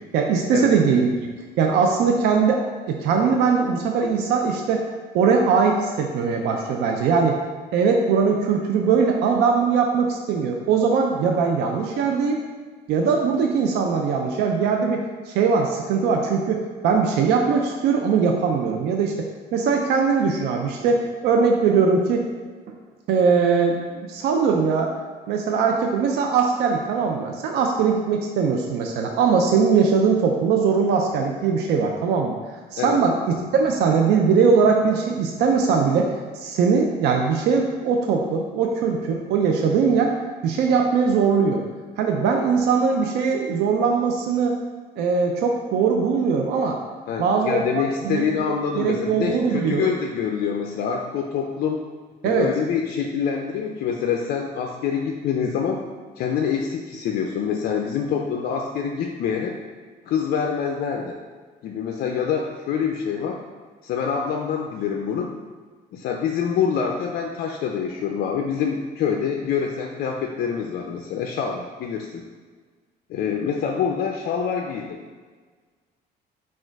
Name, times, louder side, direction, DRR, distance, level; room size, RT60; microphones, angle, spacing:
voice 1, 0.1-1.1 1.6-4.9 5.1-7.4 7.7-12.4 12.9-22.2 23.1-24.9 25.3-32.4 32.7-33.2 33.5-40.1 40.4-41.6 42.0-44.6 45.0-46.8 47.2-47.6 48.0-48.2 48.8-49.9 52.2-52.5, right 5 dB, 75° right, 2 dB, 0.5 m, -21 dB
voice 2, 47.1-51.8 52.2-55.8 56.2-59.6 60.1-61.2 61.6-63.4 63.8-65.3 65.9-72.2 73.1-75.0, left 7 dB, 65° left, 2 dB, 0.4 m, -26 dB
4.3 x 2.4 x 4.6 m, 1.5 s
cardioid pair, 110°, 17 cm